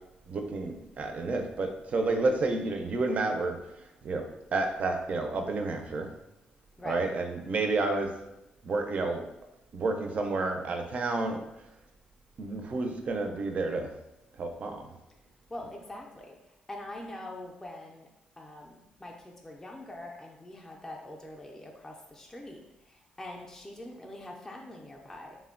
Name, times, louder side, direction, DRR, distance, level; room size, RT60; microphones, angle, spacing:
voice 1, 0.3-3.6 4.0-4.2 4.5-6.1 6.8-8.1 8.6-9.2 9.7-11.4 12.4-13.9 14.4-14.9, right 3 dB, 50° right, 4 dB, 0.4 m, -30 dB
voice 2, 15.5-16.4 16.7-18.1 18.4-22.6 23.2-25.4, left 1 dB, 15° left, -1 dB, 0.4 m, -43 dB
3.1 x 2.1 x 2.4 m, 0.90 s
cardioid pair, 80°, 3 cm